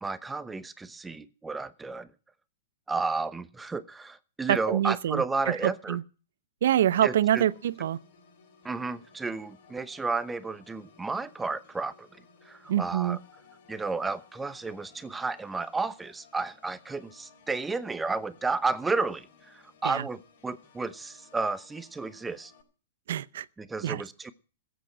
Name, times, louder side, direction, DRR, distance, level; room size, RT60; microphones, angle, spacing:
voice 1, 0.0-2.1 2.9-6.0 7.0-7.4 8.6-13.2 13.7-22.5 23.6-24.3, right 3 dB, 10° right, 0.8 m, -32 dB
voice 2, 4.5-5.6 5.9-6.0 6.6-8.0 12.7-13.2 19.8-20.0 23.1-23.5 23.8-24.0, right 11 dB, 70° right, 0.7 m, -25 dB
Organ, 6.6-22.6, left 5 dB, 60° left, 6.3 m, -58 dB
15.5 x 8.3 x 8.7 m
hypercardioid pair, 135°, 0 cm